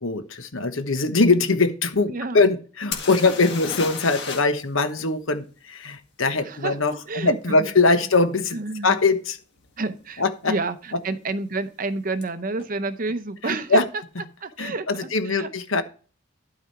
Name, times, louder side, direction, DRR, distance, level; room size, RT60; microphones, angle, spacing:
voice 1, 0.0-9.4 10.2-10.5 13.4-13.9 14.6-15.8, left 3 dB, 70° left, 9 dB, 1.1 m, -22 dB
voice 2, 2.1-2.4 3.2-3.3 6.4-6.8 7.1-7.7 8.5-8.9 9.8-13.8 14.4-15.5, right 3 dB, 40° right, 12 dB, 0.7 m, -29 dB
sound 1, 2.9-4.6 4.9-5.0 8.4-8.5 9.1-9.3 9.6-10.2 12.2-12.3 12.6-12.7, left 5 dB, 55° left, 1.8 m, -33 dB
12.5 x 4.8 x 4.6 m, 0.38 s
head